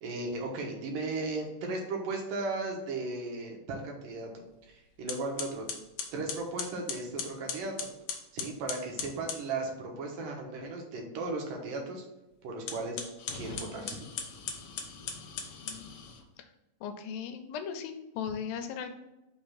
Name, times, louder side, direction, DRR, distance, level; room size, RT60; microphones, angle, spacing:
voice 1, 0.0-5.7 6.1-7.9 8.3-12.0 12.4-14.1, right 3 dB, 80° right, 1 dB, 2.7 m, -36 dB
sound 1, 4.5-4.7 5.1-9.5 12.6-16.2, left 6 dB, 70° left, 1.7 m, -39 dB
voice 2, 16.8-18.9, left 7 dB, 85° left, 7 dB, 2.5 m, -37 dB
5.9 x 3.4 x 5.7 m, 0.96 s
omnidirectional pair, 4.0 m